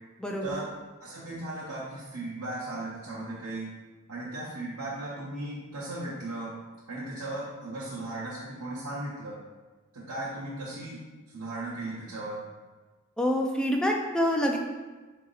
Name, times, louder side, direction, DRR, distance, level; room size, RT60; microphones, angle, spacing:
voice 1, 0.2-0.5 13.2-14.6, equal, 5° left, 1 dB, 0.4 m, -26 dB
voice 2, 1.0-3.7 4.1-6.5 6.9-9.4 9.9-11.0 11.3-12.4, right 2 dB, 80° right, -9 dB, 0.9 m, -36 dB
3.9 x 2.8 x 3.9 m, 1.3 s
head